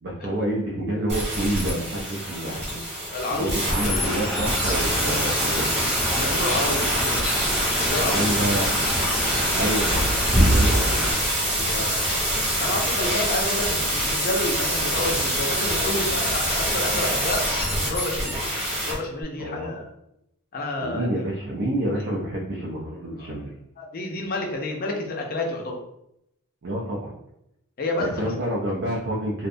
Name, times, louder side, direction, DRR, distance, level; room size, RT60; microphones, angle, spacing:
voice 1, 0.0-2.8 3.3-5.7 8.1-8.8 9.5-11.1 18.2-18.4 19.4-19.7 20.8-23.5 26.6-27.1 28.0-29.5, right 1 dB, 50° right, -3 dB, 0.4 m, -28 dB
sound 1, 1.1-18.9 19.2-19.3, equal, 30° right, 1.0 m, -25 dB
voice 2, 3.1-3.6 6.1-7.2 7.7-8.3 11.5-12.0 12.6-17.5 17.8-18.3 18.9-19.9 20.5-21.3 23.2-23.4 23.8-25.8 27.8-28.3, left 2 dB, 40° left, 1 dB, 0.5 m, -29 dB
sound 2, 3.7-11.1, equal, ahead, 0.7 m, -26 dB
2.6 x 2.1 x 2.5 m, 0.80 s
head